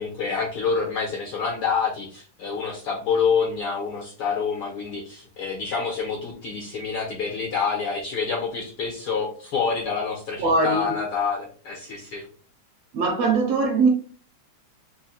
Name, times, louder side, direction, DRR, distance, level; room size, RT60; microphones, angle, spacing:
voice 1, 0.0-12.2, left 5 dB, 65° left, 1.4 m, -27 dB
voice 2, 10.4-10.9 12.9-13.9, right 3 dB, 70° right, 1.8 m, -21 dB
4.7 x 2.2 x 4.2 m
omnidirectional pair, 3.4 m